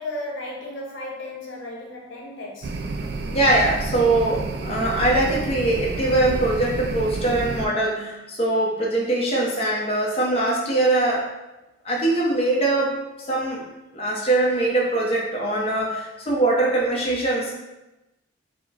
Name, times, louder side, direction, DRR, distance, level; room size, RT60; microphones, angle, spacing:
voice 1, 0.0-2.7, left 1 dB, 85° left, -2 dB, 0.9 m, -34 dB
sound 1, 2.6-7.7, right 3 dB, 55° right, 0.3 m, -30 dB
voice 2, 3.3-11.3 11.8-13.0 13.3-13.6 13.9-17.5, right 2 dB, 30° left, -3 dB, 0.7 m, -22 dB
4.7 x 2.0 x 4.0 m, 1.0 s
head